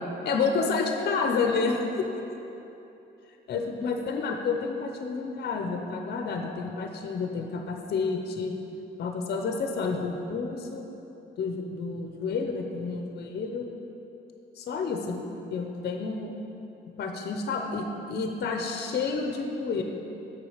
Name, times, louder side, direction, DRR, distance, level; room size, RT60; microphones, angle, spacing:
voice 1, 0.2-2.1 3.5-8.5 9.0-10.9 11.4-13.6 14.6-15.2 15.5-16.4 17.0-19.8, left 4 dB, 55° left, 3 dB, 0.7 m, -29 dB
6.9 x 4.7 x 5.0 m, 3.0 s
cardioid pair, 90°, 20 cm